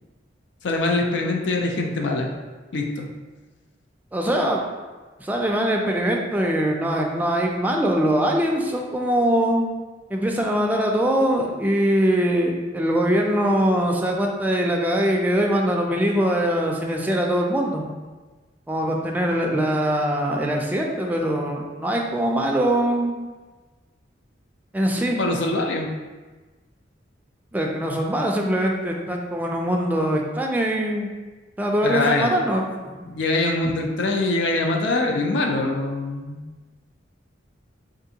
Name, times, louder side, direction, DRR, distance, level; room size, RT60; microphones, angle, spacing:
voice 1, 0.6-2.3 2.7-3.1 25.0-25.9 31.8-32.3 33.0-36.4, left 2 dB, 75° left, 2 dB, 0.5 m, -23 dB
voice 2, 4.1-4.7 5.2-9.6 10.1-17.8 18.7-23.2 24.7-25.2 27.5-31.1 31.6-32.9, equal, 10° right, 0 dB, 0.3 m, -22 dB
3.6 x 2.5 x 2.7 m, 1.3 s
head